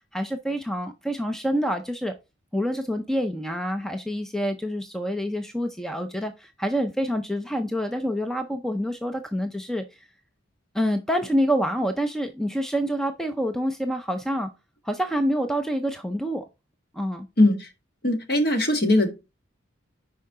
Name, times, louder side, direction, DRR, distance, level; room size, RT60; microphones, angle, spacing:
voice 1, 0.1-2.1 2.5-10.1 10.7-14.5 14.8-16.4 16.9-17.3, equal, ahead, 0.5 m, -27 dB
voice 2, 17.4-17.7 18.0-19.2, left 1 dB, 50° left, 1.7 m, -20 dB
10.0 x 4.7 x 3.7 m
head